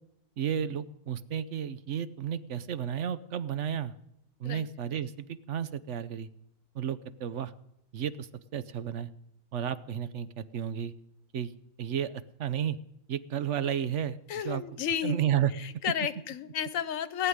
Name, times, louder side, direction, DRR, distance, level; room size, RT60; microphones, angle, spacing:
voice 1, 0.4-3.9 4.4-6.3 6.7-7.5 7.9-9.1 9.5-10.9 11.3-11.5 11.8-12.8 13.1-14.2 14.4-14.6 15.0-15.5, right 9 dB, 65° right, 14 dB, 1.1 m, -32 dB
voice 2, 14.3-15.2 15.6-17.3, left 9 dB, 85° left, 14 dB, 1.3 m, -32 dB
18.0 x 8.2 x 9.5 m, 0.81 s
omnidirectional pair, 1.3 m